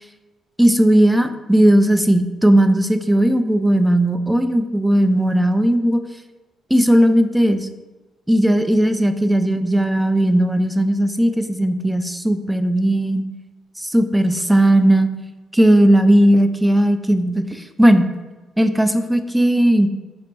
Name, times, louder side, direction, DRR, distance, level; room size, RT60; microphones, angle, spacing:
voice 1, 0.6-6.0 6.7-7.7 8.3-13.2 13.8-15.1 15.5-18.1 18.6-19.9, right 1 dB, 5° right, 9 dB, 0.3 m, -16 dB
3.9 x 3.3 x 3.0 m, 1.2 s
cardioid pair, 90°, 0 cm